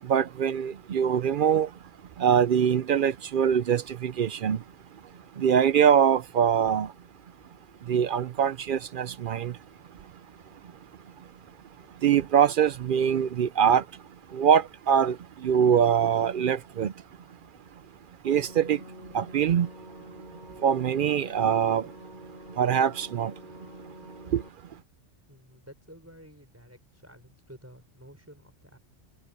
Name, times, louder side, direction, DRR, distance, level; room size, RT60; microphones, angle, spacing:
voice 1, 0.0-1.9 2.2-4.6 4.9-6.9 7.8-9.6 9.9-10.1 10.5-10.7 11.2-11.3 11.9-17.0 17.7-17.8 18.2-19.7 20.5-21.9 22.5-23.3 24.3-24.4, right 8 dB, 60° right, 0.5 m, -24 dB
sound 1, 18.3-24.5, right 1 dB, 35° right, 5.3 m, -47 dB
voice 2, 25.3-28.8, equal, 10° right, 4.8 m, -51 dB
omnidirectional pair, 1.3 m